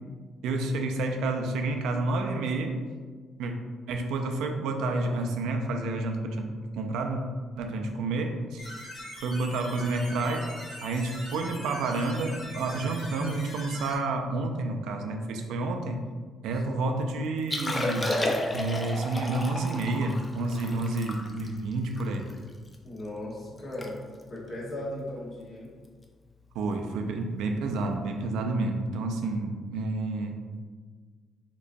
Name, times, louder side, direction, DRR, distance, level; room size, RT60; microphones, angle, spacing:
voice 1, 0.4-2.8 3.4-3.5 3.9-7.2 7.6-8.7 9.2-10.5 10.8-16.1 16.4-18.2 18.5-22.3 26.5-30.4, right 2 dB, 90° right, 4 dB, 0.4 m, -29 dB
sound 1, 8.6-13.9, left 1 dB, 80° left, 1.3 m, -42 dB
voice 2, 16.6-16.9 22.8-24.0 24.3-25.7, left 1 dB, 45° left, -5 dB, 1.2 m, -37 dB
Liquid, 17.4-22.8 23.2-23.3 23.6-23.9 24.1-24.4 25.0-25.2 26.7-26.8, left 1 dB, 25° left, 0.5 m, -32 dB
3.7 x 2.9 x 2.6 m, 1.5 s
cardioid pair, 90°, 0 cm